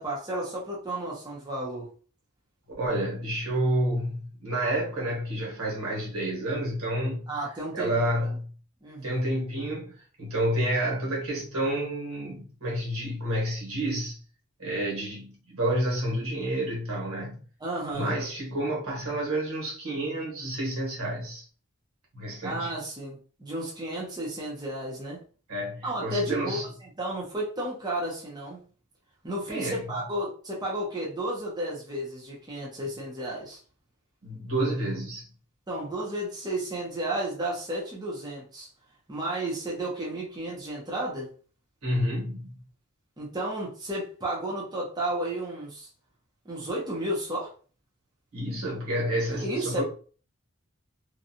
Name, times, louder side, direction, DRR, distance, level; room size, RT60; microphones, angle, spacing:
voice 1, 0.0-1.9 7.3-8.3 8.8-9.2 17.6-18.2 22.4-25.2 25.8-26.6 27.0-28.6 29.2-33.6 35.7-38.7 39.1-41.3 43.2-45.9 46.4-47.5 49.3-49.8, right 1 dB, 20° right, 0.6 m, -32 dB
voice 2, 2.8-7.3 7.7-8.5 9.0-14.2 14.6-17.4 17.9-21.4 22.1-22.7 25.5-26.6 29.5-29.8 34.2-35.3 41.8-42.5 48.3-49.8, right 1 dB, 80° right, 1.3 m, -29 dB
2.6 x 2.2 x 2.7 m
head